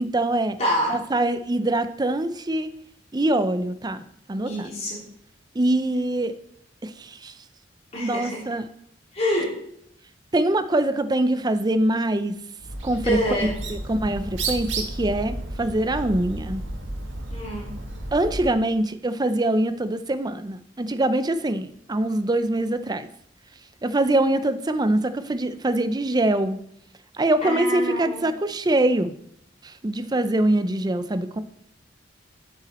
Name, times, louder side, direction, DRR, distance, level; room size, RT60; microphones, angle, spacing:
voice 1, 0.0-0.6 0.9-2.7 3.1-4.0 4.3-4.7 5.5-6.3 6.8-7.3 8.0-8.7 10.3-12.4 12.8-16.6 18.1-23.1 23.8-26.6 27.1-29.1 29.6-31.4, right 1 dB, 20° right, 11 dB, 0.5 m, -24 dB
voice 2, 0.6-0.9 4.4-5.0 7.9-8.4 9.1-9.5 13.0-13.6 17.3-17.7 27.4-28.2, equal, 35° left, -4 dB, 3.8 m, -26 dB
Bird, 12.6-18.6, right 2 dB, 85° right, 1.8 m, -32 dB
9.0 x 8.2 x 4.3 m, 0.72 s
head